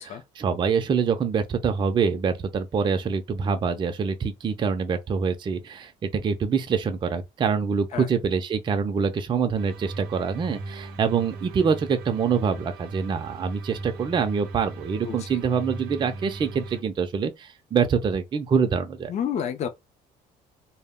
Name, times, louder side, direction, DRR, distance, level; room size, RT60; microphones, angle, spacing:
voice 1, 0.0-19.1, right 6 dB, 30° right, 0.4 m, -25 dB
sound 1, 9.6-16.8, right 3 dB, 75° right, 0.6 m, -38 dB
voice 2, 15.1-15.4 19.1-19.7, left 8 dB, 40° left, 0.4 m, -30 dB
2.1 x 2.0 x 3.5 m
cardioid pair, 110°, 17 cm